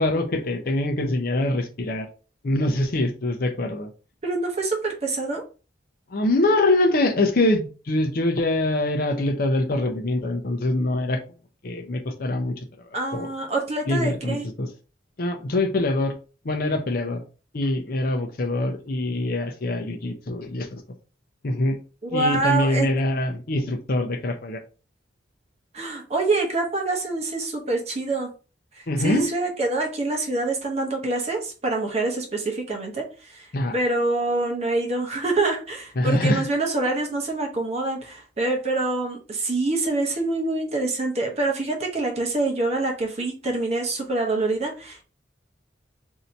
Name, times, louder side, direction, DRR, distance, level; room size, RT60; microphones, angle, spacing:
voice 1, 0.0-2.1 2.4-3.9 6.1-11.2 11.6-13.3 13.9-14.7 15.2-16.1 16.4-17.2 17.5-20.8 21.4-21.8 22.1-24.6 28.9-29.3 33.5-33.7 36.0-36.5, left 1 dB, 50° left, 5 dB, 0.6 m, -24 dB
voice 2, 4.2-5.4 12.9-14.5 22.0-22.9 25.7-28.3 28.8-45.0, right 2 dB, 35° right, 1 dB, 0.8 m, -26 dB
2.7 x 2.7 x 4.3 m, 0.35 s
head